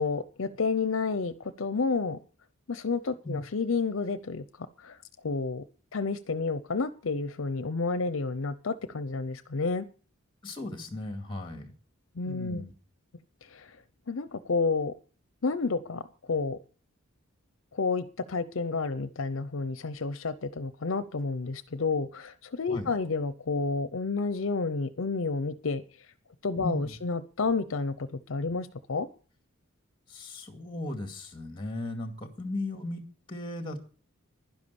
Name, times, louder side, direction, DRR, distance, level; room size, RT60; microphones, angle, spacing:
voice 1, 0.0-2.2 2.7-5.0 5.2-5.6 5.9-9.9 12.2-12.6 13.4-13.8 14.1-14.9 15.4-16.0 16.3-16.6 17.7-26.1 26.4-29.1, left 4 dB, 70° left, 14 dB, 0.6 m, -30 dB
voice 2, 10.4-11.7 12.3-12.7 22.7-22.9 26.6-27.0 30.1-33.8, left 2 dB, 25° left, 6 dB, 2.3 m, -36 dB
11.5 x 10.5 x 6.9 m, 0.40 s
head